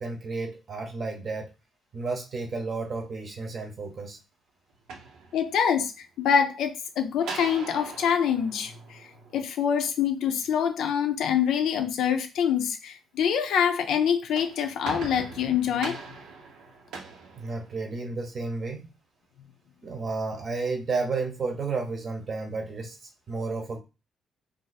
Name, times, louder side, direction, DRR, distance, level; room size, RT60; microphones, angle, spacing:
voice 1, 0.0-1.5 1.9-4.2 17.4-18.9 19.8-23.8, right 3 dB, 40° right, 0.8 m, -32 dB
sound 1, 4.7-5.9 7.2-9.7 14.1-18.2, right 4 dB, 85° right, 0.7 m, -41 dB
voice 2, 5.3-9.0 9.3-16.0, left 8 dB, 75° left, 0.6 m, -25 dB
2.6 x 2.5 x 4.0 m
cardioid pair, 145°, 0 cm